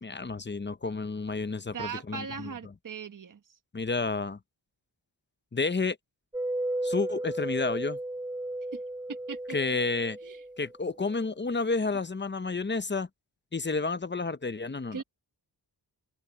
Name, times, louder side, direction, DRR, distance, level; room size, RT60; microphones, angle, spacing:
voice 1, 0.0-2.5 3.7-4.4 5.5-6.0 6.8-8.0 9.5-10.2 10.6-13.1 13.5-15.0, left 3 dB, 25° left, 0.8 m, -30 dB
voice 2, 1.7-3.4 8.7-8.8 9.1-9.8 10.2-10.4 14.9-15.0, right 6 dB, 50° right, 1.1 m, -39 dB
sound 1, 6.3-10.7, right 1 dB, 10° right, 1.0 m, -34 dB
open air
wide cardioid pair, 100°, 42 cm